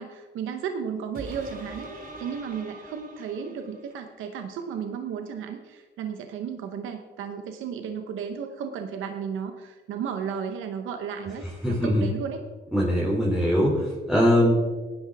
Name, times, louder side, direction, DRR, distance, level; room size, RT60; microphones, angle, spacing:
voice 1, 0.0-1.9 2.2-12.4, right 7 dB, 85° right, 6 dB, 1.0 m, -34 dB
sound 1, 1.1-4.1 4.6-4.7, right 2 dB, 45° right, 3.2 m, -43 dB
voice 2, 11.6-12.0 12.7-14.5, equal, ahead, -4 dB, 3.0 m, -21 dB
18.5 x 10.5 x 3.5 m, 1.4 s
cardioid pair, 90°, 20 cm